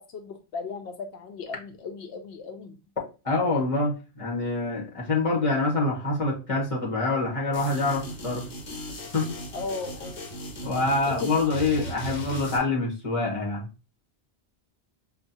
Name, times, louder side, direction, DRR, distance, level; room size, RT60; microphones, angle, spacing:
voice 1, 0.0-2.8 9.5-10.2 11.1-11.3, left 4 dB, 85° left, 5 dB, 0.8 m, -36 dB
voice 2, 3.2-8.4 9.1-9.3 10.6-13.7, left 2 dB, 35° left, -3 dB, 1.4 m, -26 dB
sound 1, 7.5-12.6, equal, 65° left, 1.0 m, -37 dB
5.3 x 2.3 x 2.7 m, 0.31 s
omnidirectional pair, 1.1 m